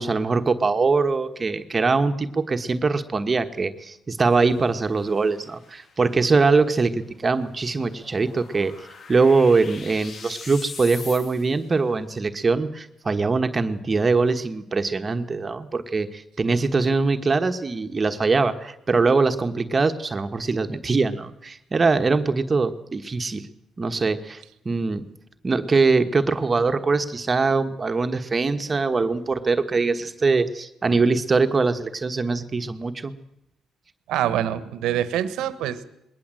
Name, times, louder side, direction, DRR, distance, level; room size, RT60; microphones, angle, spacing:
voice 1, 0.0-8.7 9.1-23.5 23.8-25.0 25.4-33.1, right 4 dB, 30° right, 7 dB, 1.3 m, -22 dB
sound 1, 4.3-11.7, left 5 dB, 55° left, 2.0 m, -44 dB
voice 2, 34.1-35.8, right 11 dB, 90° right, 14 dB, 1.4 m, -25 dB
20.5 x 18.0 x 7.7 m, 0.81 s
cardioid pair, 90°, 0 cm